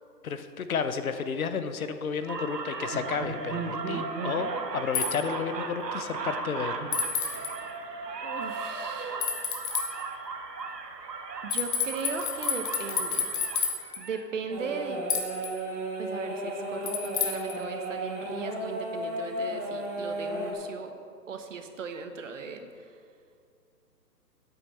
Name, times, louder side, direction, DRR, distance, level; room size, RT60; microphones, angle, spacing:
voice 1, 0.2-6.8, left 6 dB, 60° left, 10 dB, 0.8 m, -32 dB
sound 1, 2.3-14.2, right 4 dB, 80° right, 1.3 m, -36 dB
sound 2, 4.9-5.1 6.9-7.5 9.2-9.9 11.5-14.0 15.1-15.5 16.9-17.5, left 7 dB, 30° left, 1.1 m, -29 dB
voice 2, 8.2-9.3 11.4-13.3 14.0-15.0 16.0-20.9 21.3-22.9, right 5 dB, 50° right, 7 dB, 1.1 m, -38 dB
sound 3, 14.5-20.5, right 1 dB, 10° right, 0.8 m, -34 dB
10.0 x 8.6 x 5.6 m, 2.3 s
hypercardioid pair, 150°, 49 cm